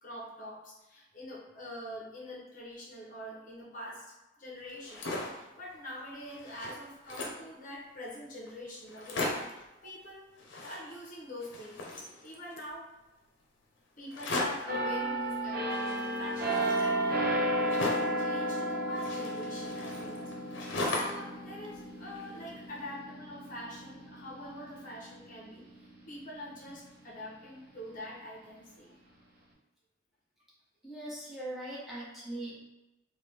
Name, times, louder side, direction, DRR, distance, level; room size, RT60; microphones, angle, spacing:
voice 1, 0.0-4.1 4.3-11.8 12.2-12.9 14.0-20.3 20.9-25.7 26.1-29.0, left 1 dB, 45° left, -4 dB, 0.7 m, -44 dB
sound 1, 4.7-5.5 5.9-6.0 6.3-7.5 8.1-8.2 8.5-8.6 8.9-9.6 10.4-11.1 11.4-12.7 14.1-14.8 15.7-18.2 19.0-21.3 21.6-22.6, left 2 dB, 85° left, 0.6 m, -38 dB
sound 2, 14.7-26.2 26.7-26.9, right 1 dB, 55° right, 0.7 m, -34 dB
voice 2, 30.8-32.6, right 1 dB, ahead, -8 dB, 0.9 m, -40 dB
3.2 x 2.2 x 3.2 m, 0.99 s
head